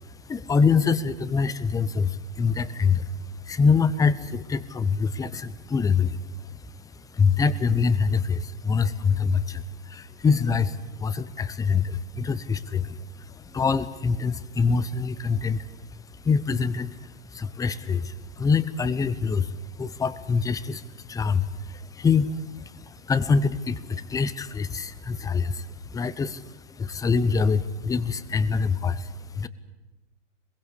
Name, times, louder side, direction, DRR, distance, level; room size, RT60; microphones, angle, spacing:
voice 1, 0.0-29.5, left 5 dB, 10° left, 16 dB, 0.8 m, -25 dB
23.0 x 22.0 x 8.4 m, 1.1 s
hypercardioid pair, 130°, 37 cm